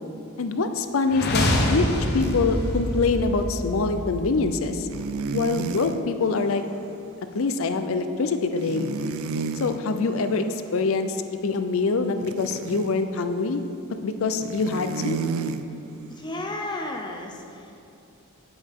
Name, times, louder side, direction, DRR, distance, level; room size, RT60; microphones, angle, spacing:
voice 1, 0.4-1.8 2.1-4.9 5.3-6.6 7.3-8.9 9.6-10.5 10.7-11.2 11.4-13.6 14.0-15.2, left 4 dB, 70° left, 8 dB, 0.5 m, -24 dB
sound 1, 1.0-5.0, left 1 dB, 45° left, 0.9 m, -26 dB
sound 2, 2.2-2.4 3.0-3.1 4.9-6.0 8.7-9.8 12.2-12.9 14.4-15.6, right 5 dB, 70° right, 0.4 m, -31 dB
voice 2, 16.1-17.7, left 2 dB, 20° left, 2 dB, 0.6 m, -33 dB
8.6 x 7.9 x 3.6 m, 2.7 s
head